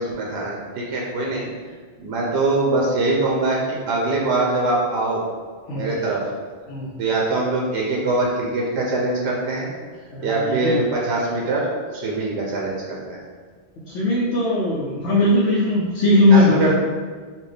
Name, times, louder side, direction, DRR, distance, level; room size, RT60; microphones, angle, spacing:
voice 1, 0.0-1.5 2.0-3.6 3.9-5.2 5.7-6.2 7.0-9.7 10.2-11.6 11.9-13.2 16.3-16.7, right 2 dB, 85° right, -3 dB, 0.9 m, -23 dB
voice 2, 10.1-10.8 13.9-16.7, left 1 dB, 85° left, -6 dB, 0.9 m, -19 dB
4.2 x 2.2 x 3.4 m, 1.5 s
omnidirectional pair, 1.1 m